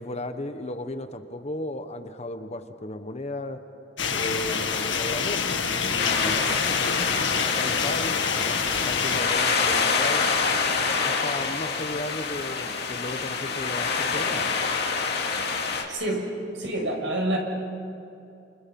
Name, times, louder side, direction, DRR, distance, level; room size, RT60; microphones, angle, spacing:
voice 1, 0.0-3.6 4.1-5.4 5.9-7.3 7.6-10.2 11.0-14.5, left 1 dB, 35° left, 8 dB, 1.3 m, -35 dB
sound 1, 4.0-9.2, left 6 dB, 80° left, 1.9 m, -27 dB
sound 2, 6.0-15.8, left 5 dB, 60° left, 2.6 m, -26 dB
voice 2, 15.9-16.3 16.5-17.4, right 1 dB, 85° right, 1 dB, 6.2 m, -27 dB
29.0 x 28.5 x 5.5 m, 2.6 s
head